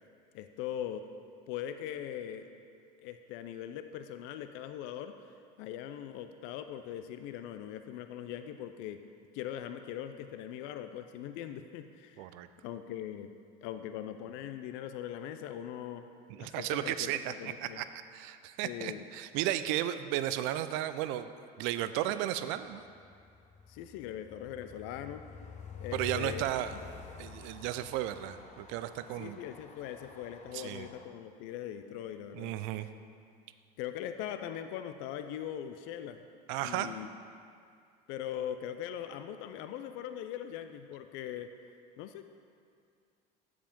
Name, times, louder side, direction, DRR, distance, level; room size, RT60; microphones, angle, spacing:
voice 1, 0.3-1.0 1.5-2.5 3.0-5.1 5.6-9.0 9.3-12.3 12.6-13.3 13.6-16.1 16.4-17.8 18.6-19.0 23.7-25.2 25.8-26.4 26.7-26.8 29.2-32.9 33.8-36.2 36.6-37.1 38.1-41.5 42.0-42.2, left 10 dB, 70° left, 8 dB, 0.4 m, -41 dB
voice 2, 12.2-12.5 16.3-21.3 21.6-22.8 25.9-26.7 27.2-29.4 30.5-30.9 32.3-32.9 36.5-36.9, right 13 dB, 70° right, 12 dB, 0.4 m, -34 dB
Train, 22.6-31.0, left 5 dB, 35° left, 0.7 m, -48 dB
7.4 x 4.9 x 5.2 m, 2.3 s
supercardioid pair, 100°, 21 cm